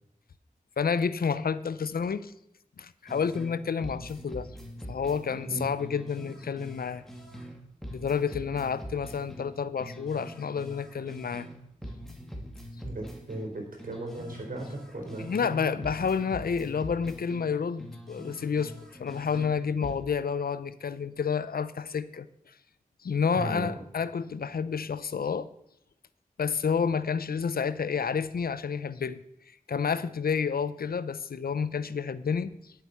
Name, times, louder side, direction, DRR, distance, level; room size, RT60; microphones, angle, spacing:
voice 1, 0.8-2.3 2.8-4.5 4.9-7.0 7.9-11.5 15.2-22.3 23.0-25.5 26.4-29.2 29.7-32.7, left 6 dB, 90° left, 15 dB, 0.6 m, -30 dB
sound 1, 3.1-3.5 3.8-7.5 7.8-11.5 11.8-15.5 15.8-19.5 19.8-20.0, equal, 5° left, 2.6 m, -43 dB
voice 2, 12.8-15.7 23.3-23.7, right 2 dB, 70° right, 1 dB, 4.3 m, -37 dB
11.0 x 7.9 x 5.7 m, 0.75 s
wide cardioid pair, 50°, 15 cm